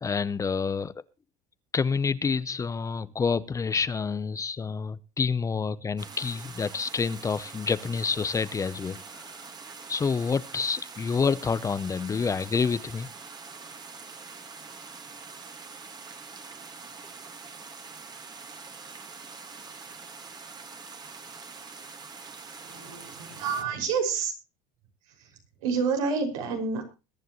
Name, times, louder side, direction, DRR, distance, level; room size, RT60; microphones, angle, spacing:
voice 1, 0.0-1.0 1.7-9.3 9.9-13.1, left 5 dB, 20° left, 16 dB, 0.6 m, -28 dB
sound 1, 6.0-23.6, right 4 dB, 25° right, 1.8 m, -44 dB
voice 2, 22.6-24.3 25.1-26.8, right 5 dB, 90° right, 3 dB, 5.8 m, -29 dB
21.5 x 10.5 x 3.0 m, 0.30 s
supercardioid pair, 125°, 17 cm